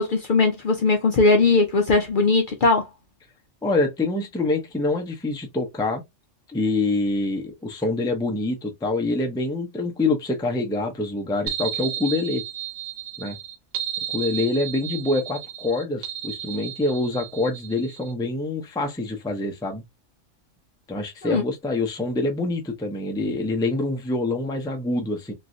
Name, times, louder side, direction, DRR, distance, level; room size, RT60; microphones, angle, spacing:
voice 1, 0.0-2.9 21.2-21.4, left 3 dB, 55° left, 0.6 m, -19 dB
voice 2, 3.6-6.0 6.5-12.4 13.2-13.4 14.1-19.8 20.9-25.3, left 2 dB, 5° left, 0.4 m, -25 dB
sound 1, 11.5-18.1, right 10 dB, 75° right, 0.9 m, -33 dB
3.1 x 2.6 x 2.5 m
omnidirectional pair, 1.3 m